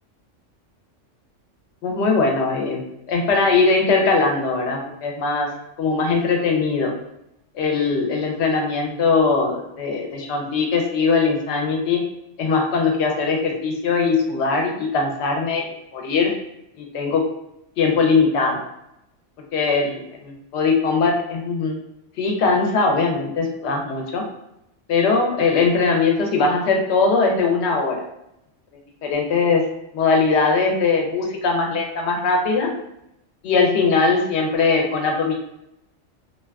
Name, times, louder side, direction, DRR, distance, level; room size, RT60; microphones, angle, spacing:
voice 1, 1.8-2.8 3.1-5.5 5.8-6.9 7.5-12.0 12.4-15.7 15.9-16.3 16.8-17.2 17.8-18.6 19.5-21.8 22.2-24.2 24.9-28.0 29.0-29.6 29.9-32.7 33.4-35.3, left 4 dB, 70° left, 1 dB, 0.8 m, -20 dB
2.5 x 2.3 x 2.2 m, 0.82 s
omnidirectional pair, 1.3 m